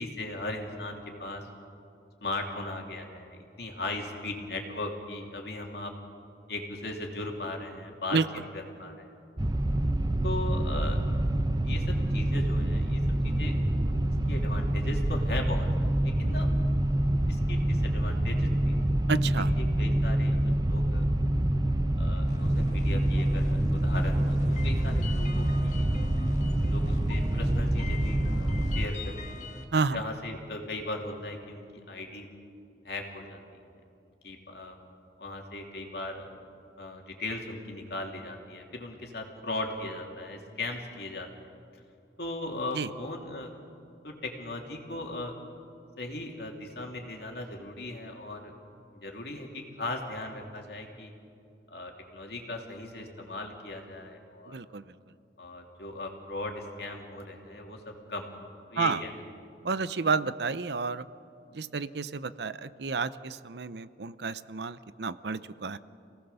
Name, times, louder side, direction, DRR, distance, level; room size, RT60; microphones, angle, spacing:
voice 1, 0.0-1.5 2.2-5.9 6.5-8.2 8.5-9.1 10.2-11.0 11.6-13.6 14.3-16.5 17.3-18.8 19.6-21.0 22.0-26.1 26.7-29.4 29.9-32.3 32.8-33.6 34.2-34.8 35.2-36.3 36.8-41.5 42.2-43.5 44.0-45.3 46.0-48.5 49.0-51.1 51.7-54.6 55.4-58.3 58.7-59.1, left 2 dB, 60° left, 1 dB, 3.0 m, -38 dB
sound 1, 9.4-28.9, right 1 dB, 20° right, 0.7 m, -26 dB
voice 2, 19.1-19.5 29.7-30.0 42.7-42.9 54.5-54.8 58.8-59.0 59.6-61.1 61.5-65.8, right 4 dB, 70° right, 14 dB, 0.7 m, -30 dB
sound 2, 22.2-29.6, left 1 dB, 40° left, 2.0 m, -41 dB
28.5 x 18.0 x 6.9 m, 2.6 s
head